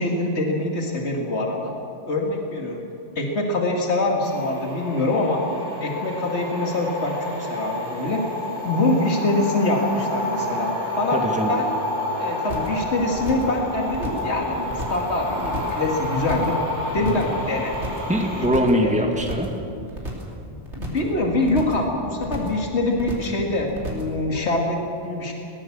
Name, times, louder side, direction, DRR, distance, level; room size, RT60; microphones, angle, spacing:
voice 1, 0.0-1.7 2.1-2.8 3.2-5.4 5.8-8.2 8.6-11.2 11.5-11.7 12.2-16.5 16.9-17.8 18.8-19.0 20.4-25.3, left 2 dB, 75° left, 1 dB, 2.4 m, -24 dB
sound 1, 4.2-18.5, left 1 dB, 65° right, 5.5 m, -29 dB
voice 2, 11.1-11.5 16.9-17.2 18.1-19.5, equal, 5° right, 2 dB, 2.0 m, -22 dB
sound 2, 12.5-12.8 13.1-13.6 13.9-14.3 14.6-15.1 15.4-15.8 16.1-16.6 16.9-17.4 17.6-18.1 18.4-18.8 19.1-19.6 19.9-20.3 20.6-21.1 21.4-21.9 22.2-22.6 22.9-23.4 23.7-24.1, equal, 80° right, 3.6 m, -33 dB
20.5 x 18.5 x 7.3 m, 2.7 s
omnidirectional pair, 1.2 m